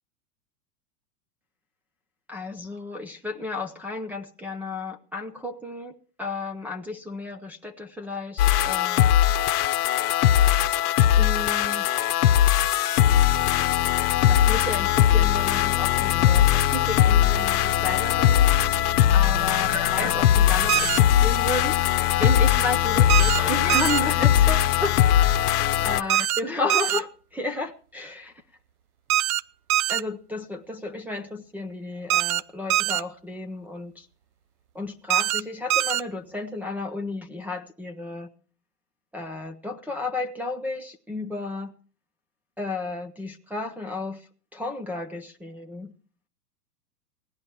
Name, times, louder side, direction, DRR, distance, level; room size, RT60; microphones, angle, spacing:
voice 1, 2.3-9.0 11.1-11.9 14.3-18.5 19.1-21.8 22.2-28.3 29.9-34.1 34.7-38.3 39.1-41.7 42.6-45.9, left 2 dB, 5° right, -1 dB, 0.6 m, -32 dB
sound 1, 8.4-26.0, left 11 dB, 70° left, 1.0 m, -20 dB
Office phone, 20.7-21.0 23.1-23.4 23.7-24.0 26.1-26.4 26.7-27.0 29.1-29.4 29.7-30.0 32.1-32.4 32.7-33.0 35.1-35.4 35.7-36.0, right 14 dB, 60° right, 0.7 m, -23 dB
17.5 x 10.5 x 4.5 m, 0.41 s
hypercardioid pair, 125°, 47 cm